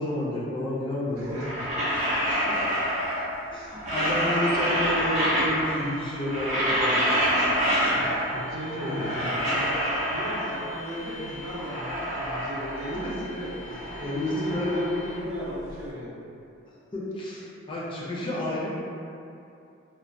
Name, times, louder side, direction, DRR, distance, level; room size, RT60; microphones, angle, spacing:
voice 1, 0.0-1.3 1.9-2.1 2.5-2.6 3.5-7.1 8.8-9.0 14.0-14.8 15.2-15.3 16.9-18.7, left 1 dB, 25° left, -8 dB, 0.4 m, -30 dB
sound 1, 1.2-3.4 3.7-5.9 6.2-8.4 8.7-10.8 11.2-13.2 13.5-15.7, equal, 35° right, 0.5 m, -27 dB
voice 2, 1.2-1.7 8.0-9.8 10.1-16.2, equal, 80° right, -6 dB, 0.5 m, -36 dB
sound 2, 5.2-15.2, left 2 dB, 60° left, 1.0 m, -46 dB
2.2 x 2.2 x 2.5 m, 2.7 s
head